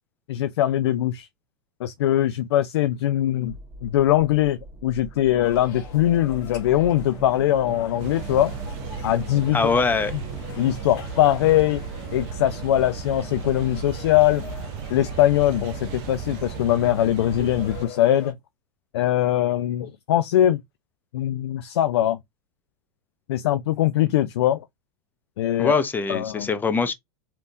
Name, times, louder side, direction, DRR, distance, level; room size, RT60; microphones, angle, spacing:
voice 1, 0.3-1.3 1.8-3.5 3.8-8.6 9.0-9.7 10.6-11.8 12.1-14.5 14.9-18.4 18.9-20.6 21.1-22.2 23.3-24.7 25.4-25.7 26.1-26.5, left 12 dB, 75° left, 0.4 m, -21 dB
sound 1, 3.4-11.8, right 1 dB, 10° right, 1.3 m, -41 dB
sound 2, 5.4-18.3, left 5 dB, 55° left, 1.1 m, -43 dB
sound 3, 8.0-17.9, right 7 dB, 50° right, 0.5 m, -35 dB
voice 2, 9.5-10.1 25.6-26.9, left 4 dB, 15° left, 0.6 m, -22 dB
3.4 x 2.8 x 2.5 m
hypercardioid pair, 105°, 14 cm